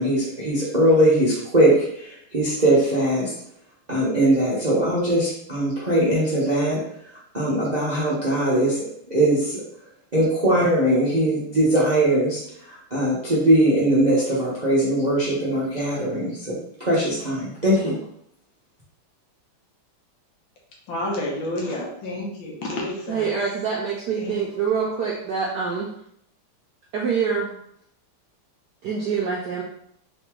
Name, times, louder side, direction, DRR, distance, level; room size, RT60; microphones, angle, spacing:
voice 1, 0.0-3.3 3.9-6.8 7.3-9.6 10.1-12.4 12.7-17.9, right 1 dB, 40° right, -8 dB, 0.6 m, -21 dB
voice 2, 20.9-23.3 24.1-24.4, left 1 dB, 65° left, -2 dB, 1.6 m, -29 dB
voice 3, 23.1-25.9 26.9-27.5 28.8-29.6, right 6 dB, 75° right, -2 dB, 0.9 m, -25 dB
3.9 x 3.0 x 3.6 m, 0.72 s
omnidirectional pair, 2.4 m